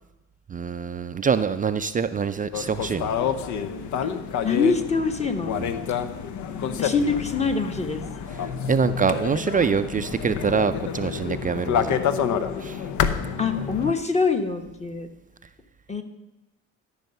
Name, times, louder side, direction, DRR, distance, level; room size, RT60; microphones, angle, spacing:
voice 1, 0.5-3.1 5.6-5.7 8.7-12.0 12.6-12.8, right 6 dB, 25° right, 11 dB, 0.4 m, -25 dB
sound 1, 2.5-13.9, left 7 dB, 60° left, 0.8 m, -28 dB
voice 2, 4.4-5.6 6.8-8.0 13.4-15.1 15.9-16.0, left 4 dB, 20° left, 6 dB, 1.2 m, -24 dB
13.0 x 5.5 x 5.5 m, 0.99 s
supercardioid pair, 85°, 33 cm